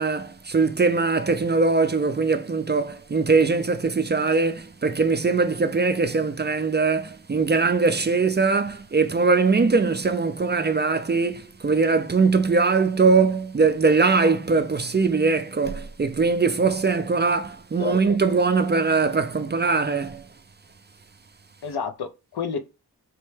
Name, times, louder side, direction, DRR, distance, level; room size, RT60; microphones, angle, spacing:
voice 1, 0.0-20.3, right 4 dB, 30° right, 0.4 m, -21 dB
voice 2, 17.8-18.2 21.6-22.6, left 6 dB, 75° left, 0.6 m, -30 dB
4.1 x 2.2 x 3.2 m
cardioid pair, 50°, 39 cm